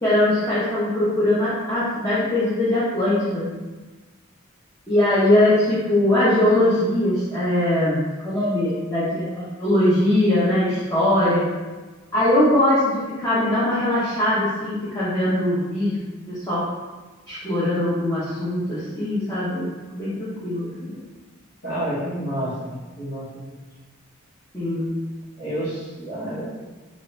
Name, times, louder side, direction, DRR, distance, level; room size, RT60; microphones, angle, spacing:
voice 1, 0.0-3.5 4.9-11.5 12.1-16.0 16.3-16.7 17.3-21.0 24.5-24.9, left 1 dB, 15° left, -11 dB, 0.8 m, -21 dB
voice 2, 21.6-23.5 25.4-26.5, right 1 dB, 50° left, -11 dB, 1.5 m, -29 dB
4.0 x 2.5 x 3.7 m, 1.3 s
head